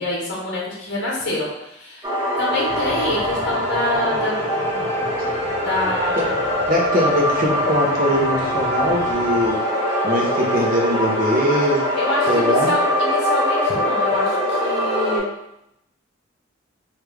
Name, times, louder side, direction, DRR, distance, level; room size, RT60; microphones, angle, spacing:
voice 1, 0.0-2.1 2.4-4.3 5.6-6.4 12.0-15.3, left 1 dB, 55° left, -3 dB, 0.8 m, -26 dB
sound 1, 2.0-15.2, left 1 dB, 20° right, 0.9 m, -22 dB
sound 2, 2.7-9.5, left 1 dB, 30° left, 1.5 m, -37 dB
voice 2, 6.7-9.6 10.0-11.9 12.3-12.7, equal, 45° right, -1 dB, 0.7 m, -21 dB
3.4 x 2.4 x 3.2 m, 0.83 s
head